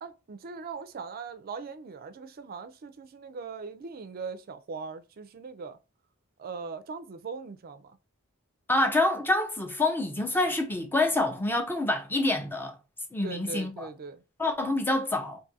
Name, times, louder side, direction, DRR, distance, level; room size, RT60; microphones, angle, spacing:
voice 1, 0.0-5.8 6.4-8.0 13.2-14.2, right 5 dB, 45° right, 0.4 m, -40 dB
voice 2, 8.7-12.8 13.1-13.9 14.4-15.4, left 2 dB, 10° left, 0.5 m, -27 dB
2.6 x 2.4 x 4.0 m
head